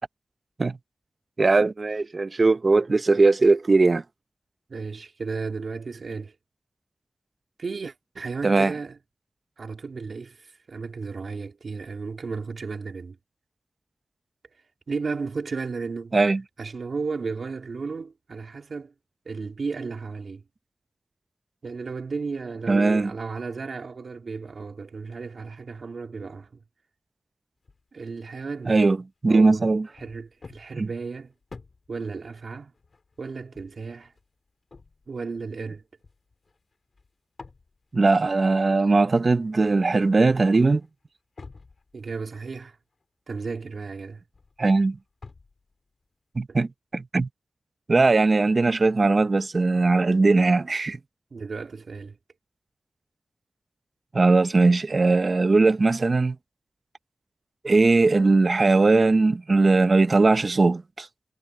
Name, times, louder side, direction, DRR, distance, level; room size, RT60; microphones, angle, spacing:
voice 1, 1.4-4.0 8.4-8.7 16.1-16.4 22.7-23.1 28.7-29.0 29.2-29.9 30.7-30.9 37.9-40.8 44.6-45.0 46.3-47.3 47.9-51.0 54.1-56.4 57.6-61.1, right 3 dB, 50° right, 0.8 m, -20 dB
voice 2, 4.7-6.3 7.6-9.0 9.6-13.2 14.9-16.2 16.6-18.9 19.3-20.4 21.6-26.5 27.9-28.9 29.3-29.7 29.9-31.3 31.9-32.7 33.2-34.1 35.1-35.8 41.9-42.8 43.3-44.2 46.5-46.6 51.3-52.2, right 4 dB, 75° right, 3.5 m, -34 dB
sound 1, 27.6-27.8 28.6-28.8 29.4-37.1 37.4-37.9 39.4-39.9 40.2-40.9 41.4-42.6 43.0-43.1 43.5-45.7, left 4 dB, 65° left, 5.0 m, -49 dB
wide cardioid pair, 60°, 0 cm